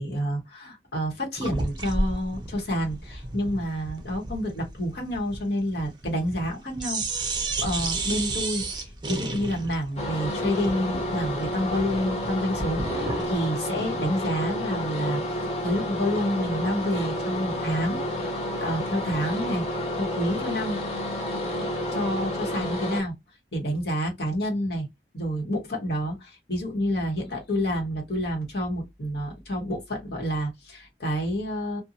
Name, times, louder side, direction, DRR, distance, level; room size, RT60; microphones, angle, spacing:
voice 1, 0.0-7.3 7.6-20.8 21.6-23.1 23.5-24.9 25.1-31.8, equal, 65° left, 1.1 m, -29 dB
sound 1, 1.4-6.5 6.8-13.3, right 2 dB, 25° right, 0.6 m, -32 dB
sound 2, 10.0-23.0, left 1 dB, 35° left, 0.7 m, -30 dB
2.6 x 2.2 x 2.7 m
head